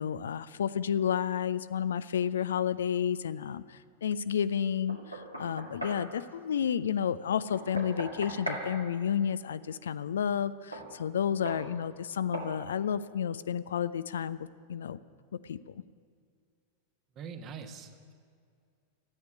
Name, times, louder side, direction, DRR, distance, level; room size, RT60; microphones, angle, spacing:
voice 1, 0.0-15.0 15.3-15.7, left 8 dB, 65° left, 15 dB, 0.4 m, -31 dB
Knock, 4.9-6.1 7.5-8.7 10.7-10.9 11.5-11.7 12.3-12.6, right 1 dB, 90° right, 2.1 m, -38 dB
voice 2, 17.1-18.1, right 6 dB, 35° right, 7 dB, 1.3 m, -43 dB
13.0 x 9.5 x 9.9 m, 2.2 s
figure-of-eight pair, 90°, 0 cm